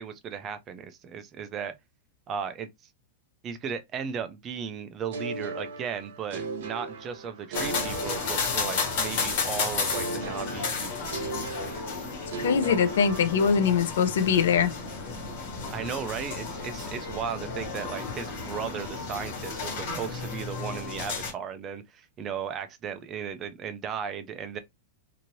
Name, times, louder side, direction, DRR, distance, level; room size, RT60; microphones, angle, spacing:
voice 1, 0.0-1.7 2.3-2.7 3.4-11.2 15.7-24.6, right 7 dB, 20° right, 0.3 m, -36 dB
sound 1, 5.1-9.1 9.9-13.8, right 3 dB, 60° right, 0.8 m, -37 dB
sound 2, 7.5-21.3, left 4 dB, 45° left, 1.3 m, -33 dB
voice 2, 12.4-14.7, left 6 dB, 75° left, 0.5 m, -22 dB
3.0 x 2.6 x 2.6 m
supercardioid pair, 175°, 0 cm